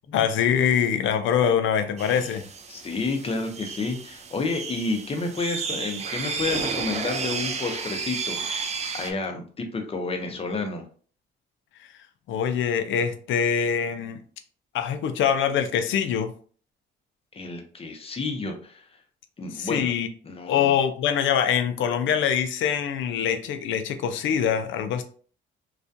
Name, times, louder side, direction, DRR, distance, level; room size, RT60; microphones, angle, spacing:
voice 1, 0.1-2.4 12.3-14.2 14.7-16.3 19.5-20.1 20.5-25.0, left 8 dB, 75° left, 0.4 m, -24 dB
sound 1, 2.0-9.1, right 5 dB, 35° right, 0.4 m, -32 dB
voice 2, 2.7-10.8 17.3-18.8 19.4-19.9 20.2-20.8, left 3 dB, 30° left, 0.6 m, -30 dB
2.3 x 2.2 x 2.6 m
cardioid pair, 90°, 20 cm